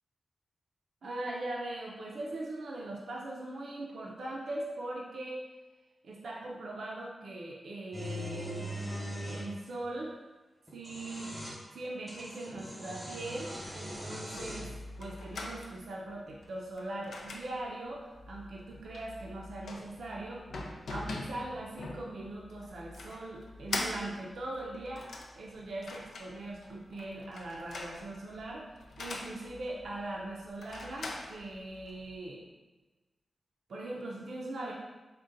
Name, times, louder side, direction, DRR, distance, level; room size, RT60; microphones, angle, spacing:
voice 1, 1.0-5.4 6.0-10.1 10.7-11.3 11.7-14.7 15.0-20.4 20.9-25.1 25.4-28.6 29.0-32.4 33.7-34.7, right 2 dB, 80° right, -3 dB, 0.4 m, -40 dB
sound 1, 7.9-9.5 10.7-11.6 12.1-14.7, equal, 5° right, 1.0 m, -41 dB
sound 2, 13.6-32.2, left 2 dB, 85° left, 0.4 m, -44 dB
3.7 x 2.2 x 3.8 m, 1.2 s
wide cardioid pair, 115°, 0 cm